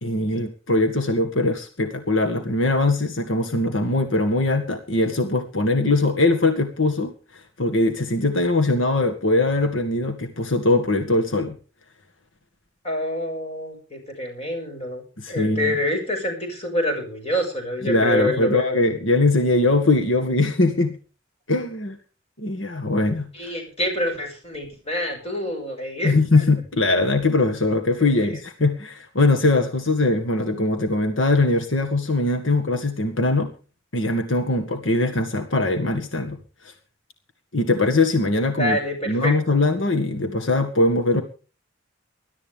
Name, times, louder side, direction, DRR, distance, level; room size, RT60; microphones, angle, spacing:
voice 1, 0.0-11.6 15.2-15.7 17.8-20.9 21.5-22.0 22.4-23.5 26.0-33.5 33.9-36.4 36.6-36.7 37.5-38.8 39.1-41.2, left 2 dB, 80° left, 5 dB, 1.9 m, -21 dB
voice 2, 12.8-18.8 23.3-26.4 28.0-28.4 38.6-39.6, left 1 dB, 35° left, 3 dB, 6.7 m, -27 dB
21.0 x 12.5 x 3.5 m, 0.36 s
head